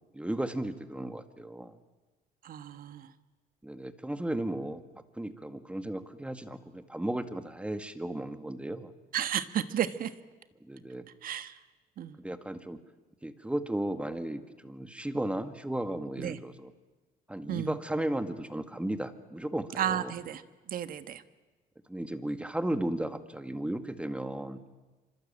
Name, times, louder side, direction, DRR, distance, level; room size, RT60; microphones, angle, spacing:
voice 1, 0.1-1.8 3.6-4.8 5.2-8.9 10.6-11.0 12.2-12.8 13.2-16.7 17.3-20.1 21.9-24.7, right 1 dB, 5° right, 9 dB, 1.9 m, -35 dB
voice 2, 2.4-3.1 9.1-10.1 11.2-11.6 12.0-12.2 16.2-16.4 17.5-17.8 19.8-20.4 20.7-21.2, right 10 dB, 55° right, 12 dB, 1.5 m, -32 dB
25.5 x 25.5 x 8.8 m, 1.2 s
cardioid pair, 110°, 17 cm